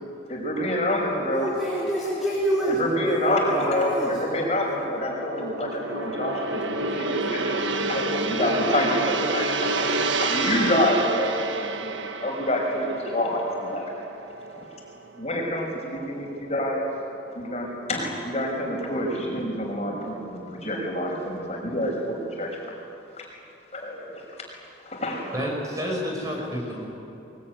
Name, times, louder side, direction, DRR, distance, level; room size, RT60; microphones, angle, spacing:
voice 1, 0.3-1.5 2.7-13.8 14.6-14.7 15.2-16.8 17.3-22.5 23.2-23.3 23.7-24.1 24.9-25.2, left 1 dB, 35° left, -1 dB, 5.8 m, -27 dB
voice 2, 1.3-4.2, right 1 dB, ahead, -6 dB, 3.6 m, -27 dB
Gong, 3.3-15.4 15.8-16.0, right 3 dB, 80° right, 1.5 m, -30 dB
voice 3, 25.3-26.9, equal, 20° right, -1 dB, 6.2 m, -29 dB
23.5 x 23.0 x 9.7 m, 2.8 s
head